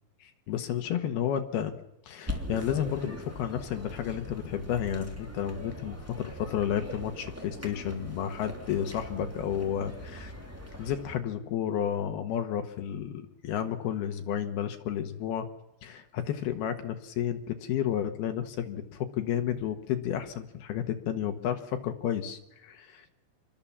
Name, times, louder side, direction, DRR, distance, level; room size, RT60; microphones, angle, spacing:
voice 1, 0.2-1.8 2.1-10.3 10.8-15.5 15.8-23.1, left 9 dB, 65° left, 7 dB, 2.7 m, -32 dB
sound 1, 2.3-11.2, left 1 dB, 5° right, 2.0 m, -41 dB
27.0 x 21.0 x 7.3 m, 0.86 s
omnidirectional pair, 5.6 m